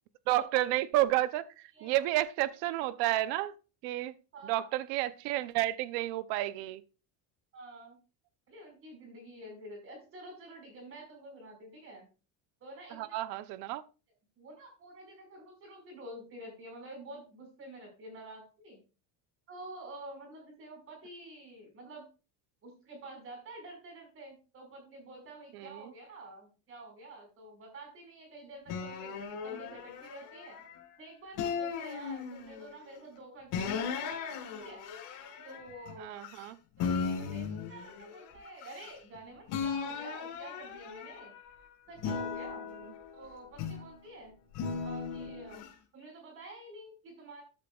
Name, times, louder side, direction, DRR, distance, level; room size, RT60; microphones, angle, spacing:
voice 1, 0.3-1.4 1.8-3.5 3.8-4.1 4.4-6.8 13.0-13.8 25.5-25.8 36.0-36.5, right 15 dB, 65° right, 0.7 m, -31 dB
voice 2, 1.7-2.0 4.3-4.7 7.5-8.0 8.5-12.1 12.6-13.1 14.4-18.8 19.5-22.1 22.6-30.6 31.0-33.9 34.6-34.8 35.4-36.2 36.8-41.3 41.9-42.7 43.1-44.3 44.8-45.6 45.9-47.4, right 2 dB, 30° right, 5.2 m, -48 dB
sound 1, 28.7-30.8 31.4-32.7 33.5-36.5 36.8-39.2 39.5-41.5 42.0-44.0 44.5-45.7, left 6 dB, 50° left, 4.0 m, -37 dB
14.0 x 9.9 x 2.4 m
cardioid pair, 180°, 41 cm